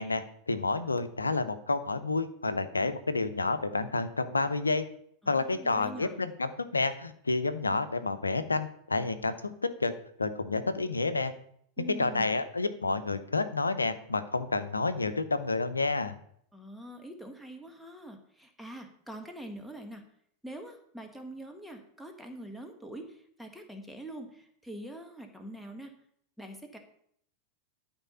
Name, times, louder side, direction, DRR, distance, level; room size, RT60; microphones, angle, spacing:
voice 1, 0.0-4.8 5.3-9.9 10.2-11.3 11.8-16.2, left 3 dB, 80° left, 12 dB, 0.8 m, -30 dB
voice 2, 5.2-6.1 11.8-12.3 16.5-20.0 20.4-25.9 26.4-26.8, right 1 dB, ahead, 3 dB, 1.6 m, -44 dB
12.5 x 4.6 x 5.5 m, 0.66 s
figure-of-eight pair, 90°, 0 cm